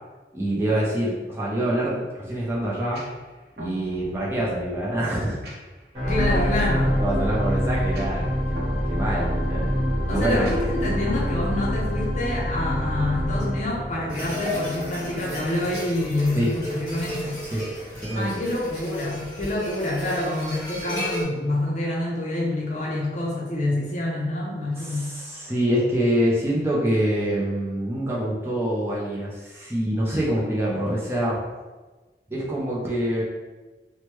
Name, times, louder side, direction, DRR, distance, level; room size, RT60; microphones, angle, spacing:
voice 1, 0.3-3.0 3.6-5.4 6.3-6.5 6.9-8.6 8.9-9.7 10.1-10.6 16.3-16.5 17.5-17.7 17.9-18.4 24.7-31.4 32.3-33.2, right 1 dB, 15° right, -6 dB, 0.5 m, -25 dB
sound 1, 2.9-12.9, equal, 60° right, 0.6 m, -41 dB
sound 2, 5.9-18.3 18.9-19.0, equal, 30° right, 1.1 m, -27 dB
voice 2, 6.1-7.0 10.1-17.4 18.1-25.1, left 1 dB, 40° left, -3 dB, 0.6 m, -27 dB
sound 3, 14.1-21.2, left 1 dB, 25° left, 1.1 m, -34 dB
3.1 x 2.1 x 3.0 m, 1.2 s
head